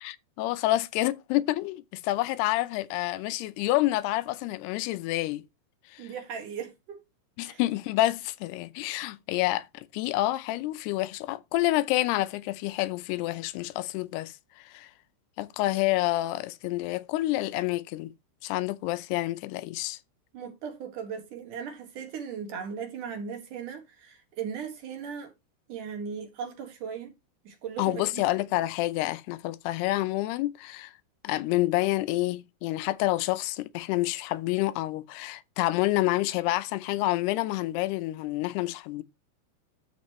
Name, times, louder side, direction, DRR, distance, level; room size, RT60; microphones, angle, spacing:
voice 1, 0.0-5.4 5.9-6.1 7.4-14.9 15.4-18.1 18.4-20.0 27.8-30.9 31.2-39.0, left 17 dB, 85° left, 2.7 m, -28 dB
voice 2, 6.0-7.0 7.4-7.6 20.3-25.3 25.7-27.1 27.4-28.2, right 7 dB, 60° right, 3.0 m, -37 dB
12.5 x 5.4 x 3.0 m
omnidirectional pair, 4.6 m